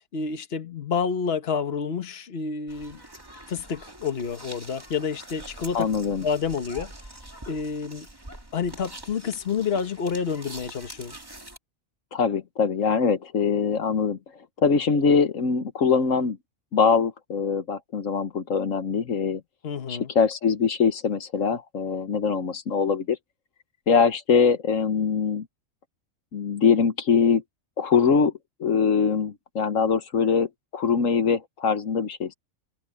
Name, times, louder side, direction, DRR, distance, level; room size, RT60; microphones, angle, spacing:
voice 1, 0.1-3.0 3.5-5.9 6.2-6.9 7.5-8.1 8.5-11.2 19.6-20.1, left 6 dB, 50° left, 1.5 m, -29 dB
sound 1, 2.7-11.6, right 1 dB, 15° right, 2.1 m, -44 dB
voice 2, 5.7-6.2 12.1-14.2 14.6-16.4 16.7-19.4 19.9-23.2 23.9-25.5 26.3-27.4 27.8-28.3 28.6-32.3, left 6 dB, 75° left, 1.6 m, -23 dB
omnidirectional pair, 1.4 m